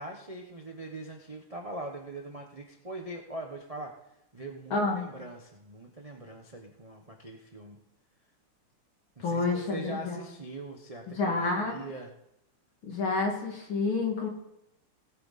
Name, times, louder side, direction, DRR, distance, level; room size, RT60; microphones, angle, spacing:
voice 1, 0.0-4.0 4.3-7.8 9.2-12.1, right 2 dB, 30° right, 2 dB, 0.6 m, -42 dB
voice 2, 4.7-5.1 9.2-10.2 11.2-11.8 12.8-14.3, left 3 dB, 65° left, 0 dB, 3.1 m, -29 dB
18.5 x 8.5 x 4.1 m, 0.82 s
omnidirectional pair, 2.4 m